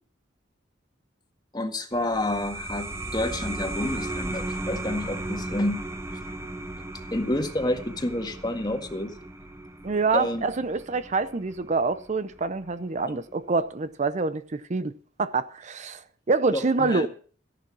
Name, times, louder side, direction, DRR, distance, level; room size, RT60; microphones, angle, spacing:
voice 1, 1.5-5.8 7.1-9.1 10.1-10.5 13.1-13.2 16.5-17.1, left 1 dB, 20° left, 1.7 m, -29 dB
sound 1, 1.9-13.1, right 1 dB, 15° right, 1.2 m, -36 dB
voice 2, 9.8-14.9 15.2-16.0 16.3-17.1, right 4 dB, 40° right, 0.6 m, -26 dB
14.0 x 11.0 x 6.1 m
head